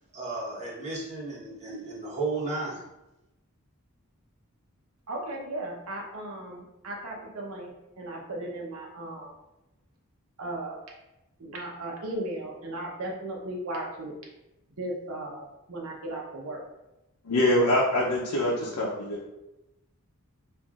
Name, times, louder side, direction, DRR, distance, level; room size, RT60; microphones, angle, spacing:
voice 1, 0.1-2.8, right 3 dB, 30° right, -6 dB, 1.2 m, -33 dB
voice 2, 5.1-9.4 10.4-10.8 11.4-14.1 14.8-16.6, right 1 dB, 75° right, -1 dB, 0.8 m, -36 dB
voice 3, 17.3-19.2, left 1 dB, 85° left, -4 dB, 0.6 m, -24 dB
5.5 x 2.5 x 2.4 m, 0.94 s
head